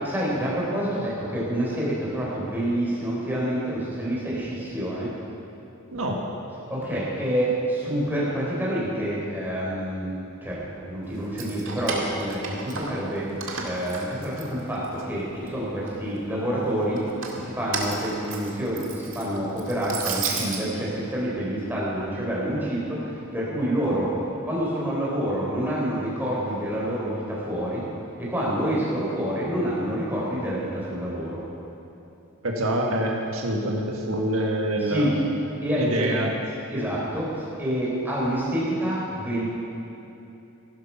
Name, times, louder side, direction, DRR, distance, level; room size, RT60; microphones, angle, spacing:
voice 1, 0.0-5.1 6.7-13.3 13.6-17.0 17.3-24.1 24.4-27.8 28.2-31.4 34.9-35.2 35.6-36.1 36.7-39.4, right 1 dB, 10° right, -7 dB, 4.0 m, -27 dB
Keys jangling, 11.2-13.1 13.4-15.0 15.4-16.2 17.0-20.6, right 4 dB, 65° right, 1.9 m, -33 dB
voice 2, 32.4-35.2 35.7-36.3, right 1 dB, 80° right, 0 dB, 1.6 m, -26 dB
14.5 x 11.5 x 5.8 m, 2.9 s
head